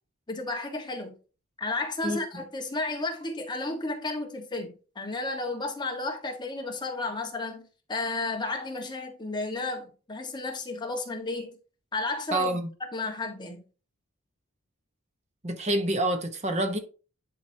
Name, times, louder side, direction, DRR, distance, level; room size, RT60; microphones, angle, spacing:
voice 1, 0.3-1.2 1.6-7.6 7.9-11.6 11.9-12.6 12.9-13.6, left 2 dB, 20° left, 1.4 m, -33 dB
voice 2, 12.3-12.7 15.4-16.8, right 1 dB, 30° right, 1.0 m, -27 dB
10.5 x 4.8 x 2.8 m
head